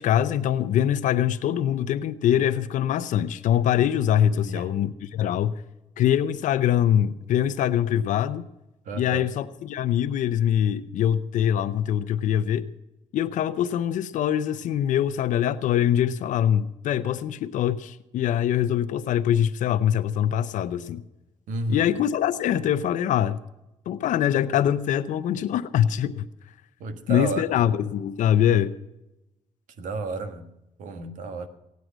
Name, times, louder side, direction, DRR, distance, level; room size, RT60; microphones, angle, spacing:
voice 1, 0.0-5.5 6.0-8.5 8.9-12.7 13.1-21.0 21.7-23.4 23.9-26.3 27.1-28.8, left 10 dB, 80° left, 0.7 m, -23 dB
voice 2, 4.3-4.7 8.8-9.3 21.5-21.8 26.8-27.4 29.8-30.5 30.8-31.5, right 3 dB, 85° right, 1.4 m, -32 dB
17.0 x 9.4 x 6.2 m
cardioid pair, 75°, 13 cm